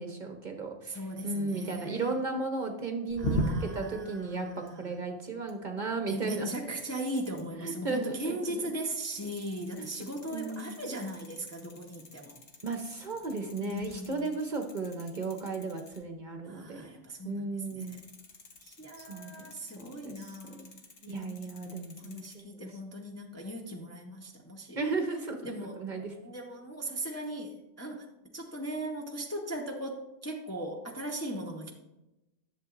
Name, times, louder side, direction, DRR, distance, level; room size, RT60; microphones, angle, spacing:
voice 1, 0.0-6.6 7.6-8.6 9.8-9.9 10.3-10.7 12.6-18.0 19.0-20.7 21.1-22.8 24.8-26.1, right 3 dB, 45° right, 4 dB, 0.8 m, -35 dB
voice 2, 0.9-2.1 3.2-4.9 6.1-12.4 13.6-14.3 16.5-18.0 18.6-24.8 25.4-28.0 28.3-31.7, right 1 dB, 15° left, 0 dB, 0.6 m, -39 dB
sound 1, 3.1-3.9 4.6-4.9 5.5-5.6 6.1-6.5 6.8-7.4 9.0-16.1 17.7-22.4, equal, 55° left, 1.2 m, -41 dB
10.5 x 6.9 x 2.5 m, 0.97 s
omnidirectional pair, 1.2 m